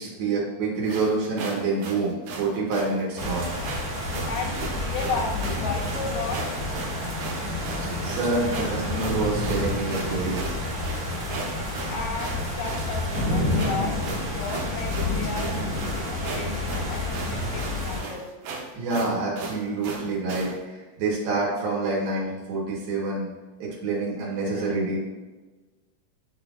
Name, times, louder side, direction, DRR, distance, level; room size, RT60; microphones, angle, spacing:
voice 1, 0.0-3.5 7.7-10.5 18.7-23.3 23.6-25.0, right 3 dB, 90° right, -5 dB, 3.3 m, -27 dB
sound 1, 0.9-20.6, right 3 dB, 70° right, 2.1 m, -36 dB
sound 2, 3.2-18.0, left 1 dB, 40° right, 2.4 m, -29 dB
voice 2, 4.3-6.4 11.9-18.3, left 3 dB, 75° left, 0 dB, 2.3 m, -34 dB
10.5 x 3.8 x 2.5 m, 1.2 s
omnidirectional pair, 4.2 m